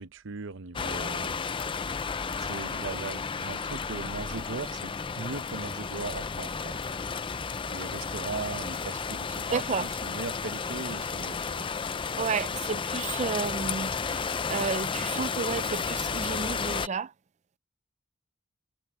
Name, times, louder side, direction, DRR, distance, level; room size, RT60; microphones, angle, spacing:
voice 1, 0.0-1.4 2.4-6.8 7.7-11.7, right 4 dB, 65° right, 0.8 m, -38 dB
sound 1, 0.7-16.9, left 5 dB, 25° left, 0.5 m, -32 dB
voice 2, 9.5-9.9 12.2-17.1, right 5 dB, 35° right, 0.4 m, -32 dB
head